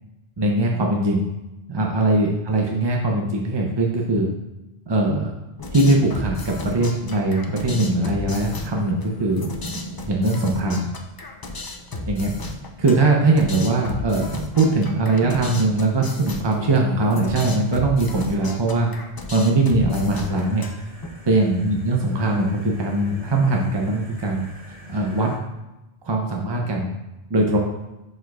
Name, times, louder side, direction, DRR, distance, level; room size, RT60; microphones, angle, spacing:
voice 1, 0.4-1.3 1.7-4.3 4.9-5.3 5.7-9.5 10.0-10.9 12.1-12.3 12.8-18.9 19.3-20.7 21.2-25.4 26.0-26.9 27.3-27.6, right 2 dB, 35° right, -1 dB, 0.5 m, -21 dB
sound 1, 5.6-21.1, left 1 dB, 35° left, 0.4 m, -34 dB
sound 2, 20.3-25.4, left 1 dB, 10° right, 2.2 m, -45 dB
10.5 x 4.4 x 2.3 m, 1.0 s
omnidirectional pair, 1.1 m